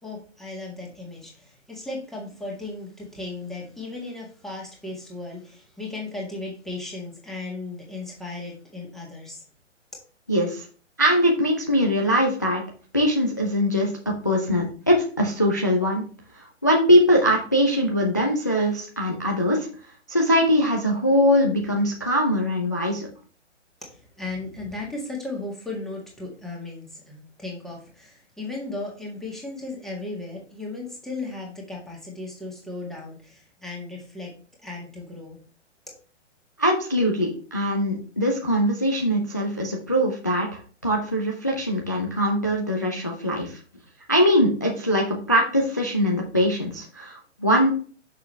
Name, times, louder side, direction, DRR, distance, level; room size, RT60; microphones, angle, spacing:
voice 1, 0.0-9.4 23.8-34.3 34.6-35.4, left 2 dB, ahead, -3 dB, 1.7 m, -36 dB
voice 2, 10.3-10.7 11.0-12.6 12.9-16.0 16.3-19.7 20.1-23.1 36.6-43.6 44.1-47.7, equal, 15° left, 0 dB, 0.3 m, -22 dB
6.4 x 6.0 x 3.2 m, 0.40 s
figure-of-eight pair, 135°, 37 cm